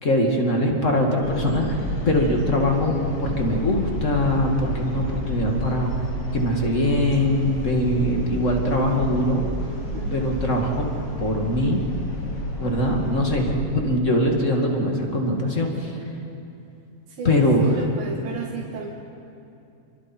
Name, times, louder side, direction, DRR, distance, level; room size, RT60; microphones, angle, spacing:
voice 1, 0.0-5.9 6.3-9.4 10.1-10.9 11.2-11.8 12.6-16.0 17.2-17.8, left 1 dB, 25° left, 1 dB, 2.0 m, -22 dB
sound 1, 1.2-13.6, equal, 45° left, 3.2 m, -30 dB
voice 2, 9.9-10.5 17.2-18.9, right 4 dB, 90° right, -3 dB, 3.8 m, -34 dB
29.5 x 24.0 x 4.5 m, 2.7 s
omnidirectional pair, 4.0 m